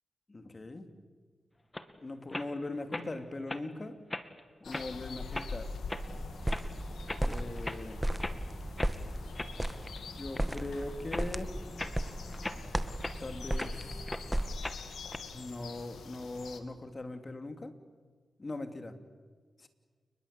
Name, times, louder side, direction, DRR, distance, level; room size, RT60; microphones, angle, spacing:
voice 1, 0.3-0.9 2.0-4.0 4.6-5.7 7.2-8.0 10.1-11.5 13.2-14.1 15.3-17.7 18.4-19.0 19.6-19.7, left 2 dB, 40° left, 8 dB, 3.1 m, -40 dB
sound 1, 1.7-1.9 2.3-2.5 2.9-3.1 3.5-3.6 4.1-4.4 4.7-4.9 5.3-5.5 5.9-6.1 6.5-6.7 7.1-7.2 7.6-7.8 8.2-8.4 8.8-8.9 9.3-10.0 10.3-10.7 11.1-11.3 11.8-12.0 12.4-13.7 14.1-14.2 14.6-15.2, left 1 dB, 25° left, 2.3 m, -39 dB
sound 2, 4.6-16.6, left 4 dB, 85° left, 2.2 m, -46 dB
sound 3, 6.1-14.7, right 1 dB, 10° right, 1.8 m, -36 dB
30.0 x 21.0 x 8.5 m, 1.5 s
supercardioid pair, 40°, 0 cm